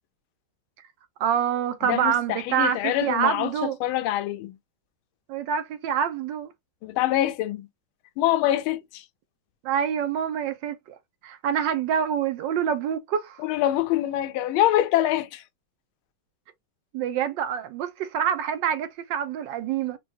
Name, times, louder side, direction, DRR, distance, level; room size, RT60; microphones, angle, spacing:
voice 1, 1.2-3.8 5.3-6.5 9.6-10.8 11.2-13.4 16.9-20.0, right 8 dB, 75° right, 1.2 m, -26 dB
voice 2, 1.8-4.6 6.8-7.7 8.2-9.0 13.4-15.4, left 13 dB, 85° left, 1.4 m, -25 dB
4.5 x 2.3 x 2.7 m
omnidirectional pair, 2.2 m